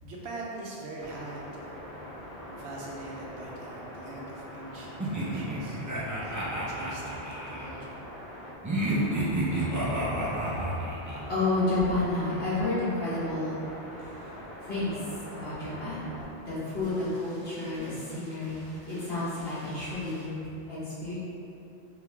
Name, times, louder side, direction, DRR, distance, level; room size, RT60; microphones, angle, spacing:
voice 1, 0.0-1.8 2.5-8.0, right 2 dB, 80° right, -4 dB, 1.0 m, -43 dB
sound 1, 1.0-16.2 16.8-20.3, equal, 45° right, 1.6 m, -44 dB
sound 2, 5.0-7.7 8.6-11.2, right 1 dB, 25° right, 0.5 m, -31 dB
voice 2, 11.3-13.6 13.9-14.3 14.6-16.1 16.4-20.4 20.7-21.2, left 2 dB, 70° left, -12 dB, 1.8 m, -31 dB
3.6 x 3.2 x 3.5 m, 2.8 s
omnidirectional pair, 1.1 m